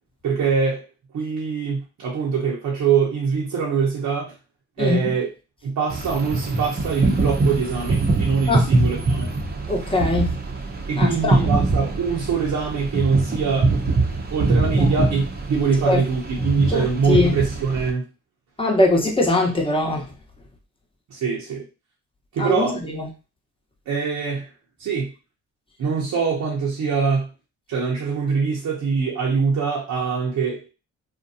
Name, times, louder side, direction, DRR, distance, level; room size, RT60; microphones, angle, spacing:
voice 1, 0.2-0.9 1.1-4.3 4.8-5.3 5.6-9.3 10.9-13.8 14.3-18.0 21.1-21.7 22.3-22.8 23.9-24.5 24.8-25.1 25.8-27.3 27.7-30.7, right 5 dB, 70° right, 0.8 m, -23 dB
voice 2, 4.8-5.1 8.5-8.7 9.7-10.3 11.0-11.4 14.8-14.9 15.8-16.0 16.7-17.3 18.6-20.1 22.4-23.1, left 2 dB, 15° left, 0.9 m, -21 dB
sound 1, 5.9-17.9, right 2 dB, 30° right, 0.7 m, -23 dB
2.5 x 2.2 x 2.6 m
supercardioid pair, 60°, 32 cm